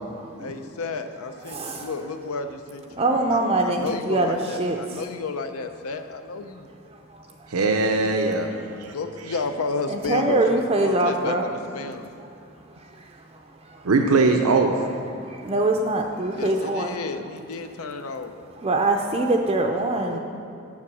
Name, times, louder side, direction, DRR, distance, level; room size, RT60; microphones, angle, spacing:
voice 1, 0.4-6.7 8.9-12.1 16.3-18.3 20.1-20.2, left 4 dB, 85° left, 8 dB, 0.6 m, -32 dB
voice 2, 1.5-1.9 3.0-5.0 7.1-7.2 9.9-11.5 12.2-12.3 13.0-13.1 13.6-13.8 15.3-16.9 18.6-20.2, right 2 dB, 25° right, 2 dB, 0.4 m, -23 dB
voice 3, 7.5-8.5 8.8-8.9 13.8-14.7, right 3 dB, 85° right, 3 dB, 0.6 m, -20 dB
7.4 x 7.0 x 6.2 m, 2.6 s
head